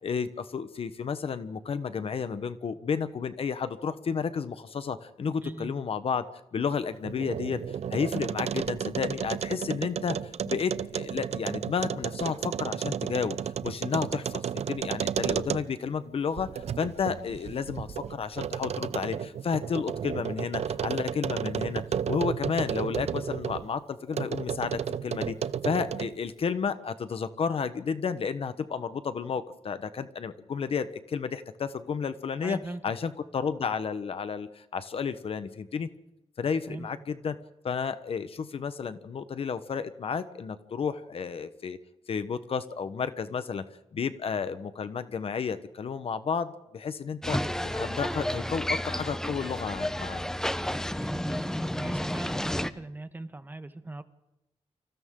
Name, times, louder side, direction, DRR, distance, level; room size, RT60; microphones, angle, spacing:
voice 1, 0.0-25.4 25.6-32.6 32.8-35.9 36.4-37.4 37.6-41.8 42.1-43.7 43.9-47.4 47.6-50.2, left 6 dB, 55° left, 11 dB, 1.1 m, -32 dB
voice 2, 5.4-5.7 32.4-32.8 36.7-36.9 51.0-54.0, right 2 dB, 15° right, 10 dB, 1.2 m, -40 dB
sound 1, 6.9-15.9 16.4-23.7 24.1-26.2, right 8 dB, 65° right, 0.7 m, -33 dB
sound 2, 47.2-52.7, left 1 dB, 5° left, 0.8 m, -31 dB
29.5 x 25.5 x 3.8 m, 0.89 s
wide cardioid pair, 155°, 12 cm